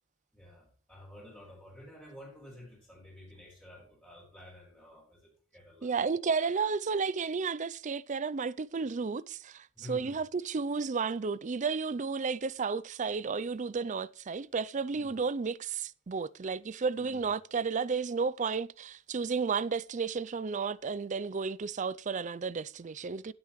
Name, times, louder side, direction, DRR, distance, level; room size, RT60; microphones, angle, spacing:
voice 1, 0.3-5.9 9.7-10.2 14.9-15.1 17.0-17.2, left 1 dB, 5° left, 5.4 m, -50 dB
voice 2, 5.8-23.3, right 5 dB, 35° right, 0.4 m, -32 dB
17.0 x 8.5 x 3.1 m
head